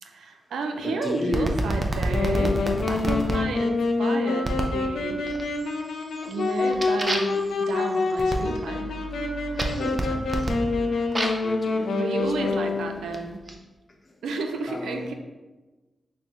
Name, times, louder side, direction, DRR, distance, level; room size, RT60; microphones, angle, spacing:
voice 1, 0.0-2.6 2.9-5.3 6.3-9.0 11.9-13.4 14.2-15.1, right 3 dB, 90° right, 5 dB, 0.4 m, -31 dB
voice 2, 0.8-1.5 9.8-10.9 11.2-13.2 14.0-14.2 14.7-15.1, left 2 dB, 40° left, 1 dB, 0.8 m, -35 dB
sound 1, 1.3-3.4 4.4-4.8 5.3-5.7 6.1-11.5 12.3-13.5, right 1 dB, 35° right, 0.6 m, -30 dB
Wind instrument woodwind instrument, 2.1-13.0, left 3 dB, 80° left, 0.4 m, -26 dB
6.2 x 2.1 x 3.0 m, 1.1 s
cardioid pair, 45°, 0 cm